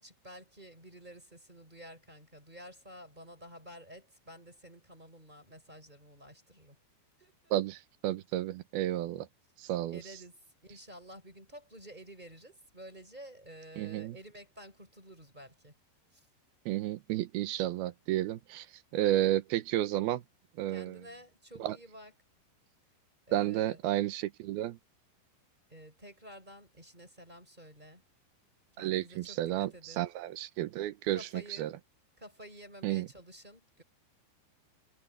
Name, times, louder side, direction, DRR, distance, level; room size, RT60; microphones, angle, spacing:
voice 1, 0.0-6.8 7.2-7.5 9.9-15.8 16.1-16.3 20.7-22.1 23.3-23.8 25.7-28.0 28.7-30.1 31.1-31.7 32.2-33.8, equal, 10° right, 4.4 m, -51 dB
voice 2, 7.5-9.3 9.6-10.0 13.8-14.1 16.7-18.7 18.9-20.2 20.6-21.0 21.6-21.8 23.3-24.8 28.8-29.7 30.0-31.7 32.8-33.1, right 14 dB, 70° right, 2.5 m, -32 dB
omnidirectional pair, 5.2 m